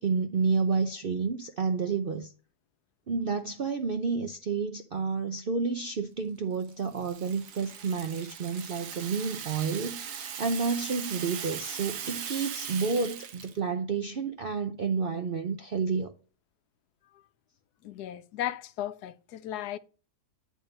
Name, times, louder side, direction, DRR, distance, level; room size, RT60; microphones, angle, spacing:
voice 1, 0.0-2.3 3.1-16.1, right 5 dB, 60° right, 0.5 m, -30 dB
Rattle (instrument), 6.6-13.6, right 8 dB, 80° right, 1.5 m, -39 dB
voice 2, 17.8-19.8, left 12 dB, 80° left, 1.1 m, -35 dB
9.3 x 3.7 x 5.3 m
omnidirectional pair, 1.7 m